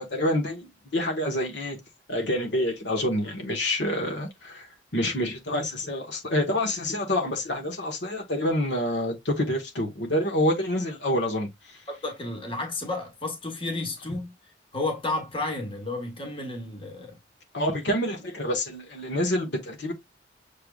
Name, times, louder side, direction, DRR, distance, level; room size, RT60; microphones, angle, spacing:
voice 1, 0.0-1.8 2.1-4.7 4.9-11.8 17.5-19.9, left 1 dB, 65° left, 1.4 m, -27 dB
voice 2, 11.9-14.3 14.7-17.1, left 2 dB, 25° left, 1.5 m, -32 dB
6.8 x 3.3 x 2.4 m
head